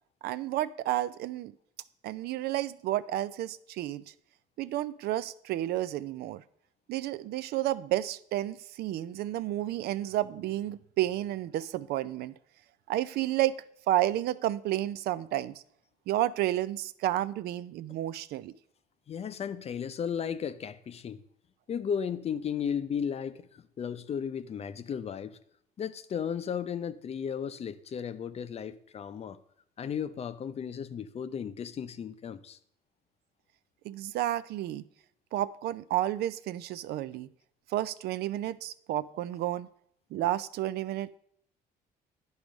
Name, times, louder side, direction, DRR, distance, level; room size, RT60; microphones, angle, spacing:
voice 1, 0.2-1.5 2.0-4.0 4.6-6.4 6.9-12.3 12.9-13.5 13.9-15.5 16.1-18.5 33.8-34.8 35.3-37.3 37.7-39.7 40.1-41.2, right 14 dB, 70° right, 0.4 m, -31 dB
voice 2, 19.1-21.2 21.7-25.4 25.8-29.4 29.8-32.6, left 7 dB, 40° left, 0.6 m, -35 dB
10.5 x 4.8 x 5.1 m
cardioid pair, 110°, 17 cm